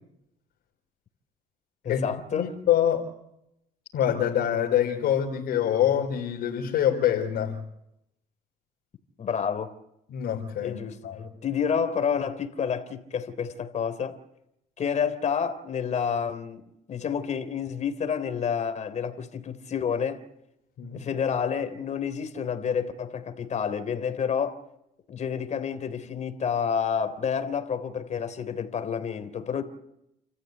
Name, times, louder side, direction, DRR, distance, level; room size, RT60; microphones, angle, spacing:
voice 1, 1.8-2.5 9.2-9.7 10.6-11.0 11.4-14.2 14.8-16.6 16.9-20.2 20.9-24.6 25.1-29.6, left 7 dB, 45° left, 3.5 m, -29 dB
voice 2, 2.3-3.0 3.9-7.6 10.1-11.3 20.8-21.0, left 10 dB, 70° left, 4.3 m, -25 dB
29.5 x 14.5 x 9.5 m
cardioid pair, 110°, 17 cm